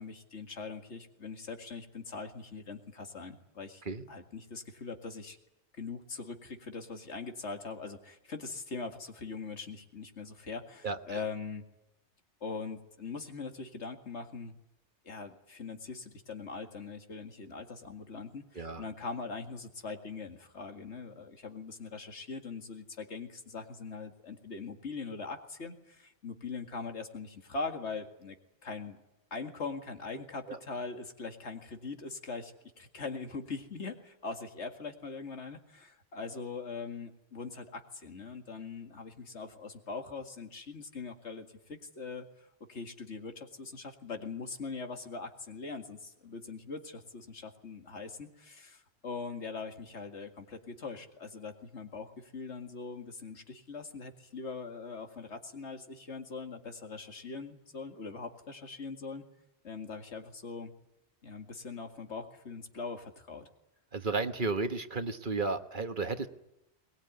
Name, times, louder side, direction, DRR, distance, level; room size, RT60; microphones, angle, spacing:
voice 1, 0.0-3.8 4.1-5.4 5.7-11.6 12.4-14.5 15.0-28.4 28.6-29.0 29.3-59.2 59.6-60.7 61.2-63.5, left 4 dB, 80° left, 6 dB, 2.4 m, -42 dB
voice 2, 10.8-11.2 18.5-18.8 30.5-30.6 63.9-66.3, right 3 dB, 50° right, 9 dB, 1.3 m, -33 dB
22.0 x 20.0 x 9.5 m, 0.87 s
omnidirectional pair, 1.2 m